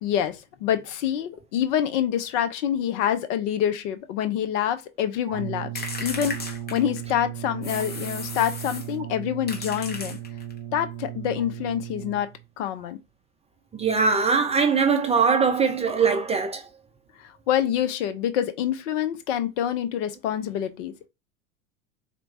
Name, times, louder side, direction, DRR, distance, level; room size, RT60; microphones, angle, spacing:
voice 1, 0.0-5.7 6.0-10.2 10.7-12.3 12.6-13.0 17.2-21.1, left 10 dB, 55° left, 0.8 m, -26 dB
Brass instrument, 5.3-12.4, right 13 dB, 45° right, 1.0 m, -36 dB
sound 1, 5.8-7.2 7.6-9.0 9.5-10.6, left 4 dB, 20° left, 1.1 m, -35 dB
voice 2, 13.7-16.6, right 5 dB, 15° right, 0.5 m, -21 dB
4.3 x 2.9 x 2.7 m
hypercardioid pair, 85°, 44 cm